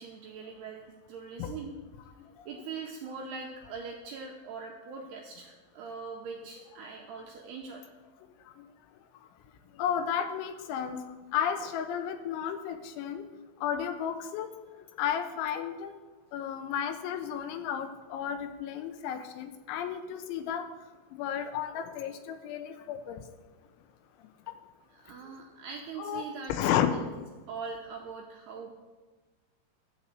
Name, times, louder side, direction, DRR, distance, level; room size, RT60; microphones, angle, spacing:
voice 1, 0.0-1.8 2.5-7.9 24.9-26.6 26.9-27.0 27.5-28.8, right 5 dB, 90° right, 1 dB, 2.3 m, -42 dB
voice 2, 9.7-13.3 13.6-14.5 15.0-15.9 16.3-20.7 21.1-23.2 24.5-24.6 25.2-25.4 26.0-26.9, left 9 dB, 85° left, 9 dB, 2.9 m, -33 dB
12.0 x 4.2 x 7.6 m, 1.3 s
omnidirectional pair, 5.5 m